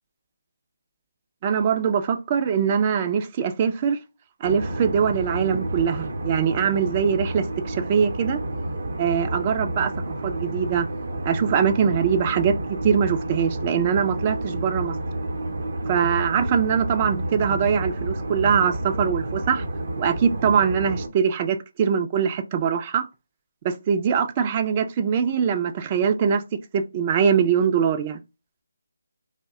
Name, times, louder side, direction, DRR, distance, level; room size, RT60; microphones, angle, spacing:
voice 1, 1.4-4.0 4.4-8.4 9.0-9.9 10.2-10.9 11.2-12.5 12.8-14.9 15.9-19.7 20.0-23.1 23.6-26.4 26.7-28.2, right 7 dB, 25° right, 0.3 m, -22 dB
sound 1, 4.4-21.1, right 1 dB, 60° right, 0.7 m, -30 dB
2.7 x 2.1 x 3.5 m
figure-of-eight pair, 160°, 0 cm